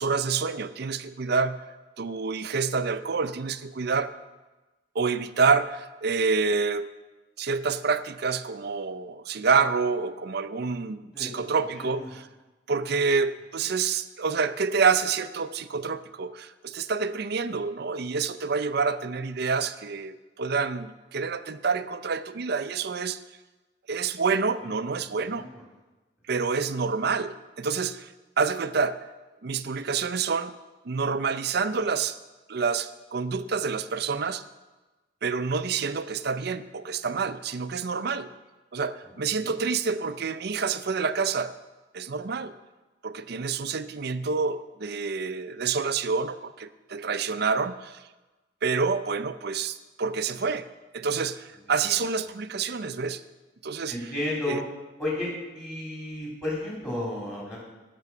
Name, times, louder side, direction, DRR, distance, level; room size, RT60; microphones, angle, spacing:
voice 1, 0.0-1.6 2.0-4.1 4.9-6.9 7.4-12.3 12.7-23.2 23.9-25.5 26.3-29.0 29.4-30.5 30.8-32.2 32.5-34.4 35.2-38.3 38.7-41.5 41.9-42.5 43.0-48.0 48.6-50.7 50.9-53.2 53.6-54.1 54.5-54.6, right 5 dB, 55° right, 12 dB, 0.5 m, -27 dB
voice 2, 11.1-12.1 25.2-25.6 39.4-39.5 53.9-54.6 55.0-57.6, left 1 dB, 15° left, -5 dB, 3.0 m, -33 dB
15.0 x 6.2 x 6.0 m, 1.1 s
head